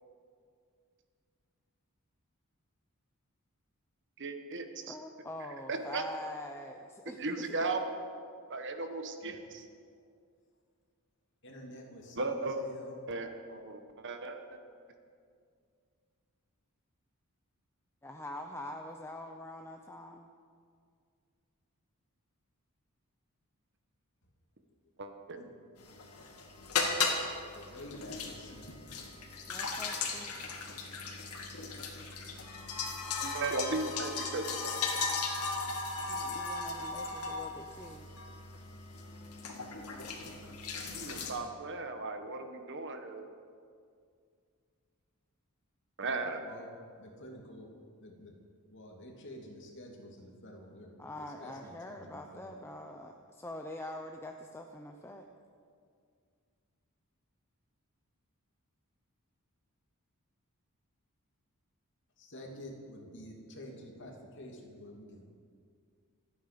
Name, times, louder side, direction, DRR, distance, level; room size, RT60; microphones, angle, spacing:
voice 1, 4.2-4.9 5.7-6.0 7.1-8.0 8.5-9.7 12.2-12.6 13.1-14.4 25.0-25.4 33.2-34.9 40.9-43.2 46.0-46.4, right 3 dB, 55° right, 6 dB, 1.4 m, -36 dB
voice 2, 4.9-7.5 18.0-20.3 29.5-30.3 36.1-38.1 51.0-55.2, left 1 dB, 10° left, 3 dB, 0.7 m, -44 dB
voice 3, 11.4-13.0 25.4-25.5 27.5-28.7 46.4-47.7 48.0-48.3 48.7-50.9 51.4-52.6 62.2-65.2, left 1 dB, 55° left, 1 dB, 2.6 m, -49 dB
sound 1, 25.8-41.3, left 4 dB, 85° left, 2.1 m, -37 dB
27.5 x 9.4 x 5.3 m, 2.2 s
head